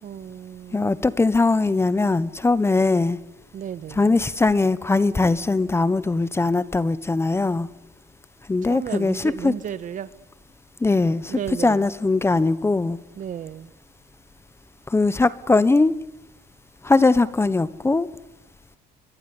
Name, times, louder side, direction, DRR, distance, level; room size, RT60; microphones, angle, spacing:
voice 1, 0.0-0.9 3.5-4.2 8.6-10.1 11.3-11.9 13.1-13.7, right 9 dB, 45° right, 1.5 m, -34 dB
voice 2, 0.7-3.2 4.0-7.7 8.5-9.2 9.4-9.5 10.8-13.0 14.9-15.9 16.8-18.1, left 3 dB, 15° left, 1.2 m, -20 dB
24.5 x 23.0 x 9.7 m
cardioid pair, 125°, 18 cm